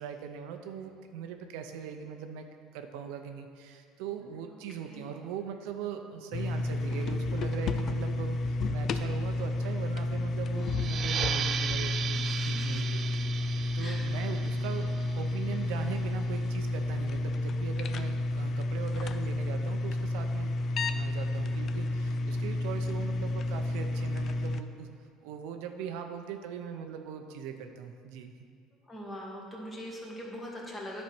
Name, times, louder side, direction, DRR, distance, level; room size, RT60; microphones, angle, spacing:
voice 1, 0.0-2.5 2.7-13.0 13.7-24.9 25.2-28.3, right 8 dB, 85° right, 6 dB, 0.6 m, -40 dB
sound 1, 6.3-24.6, left 2 dB, 40° left, 0.4 m, -31 dB
sound 2, 10.7-15.9, right 8 dB, 35° right, 0.3 m, -36 dB
voice 2, 12.1-12.8 13.8-14.2 28.9-31.0, equal, 15° left, -2 dB, 1.5 m, -42 dB
10.5 x 4.3 x 6.0 m, 2.2 s
cardioid pair, 140°, 0 cm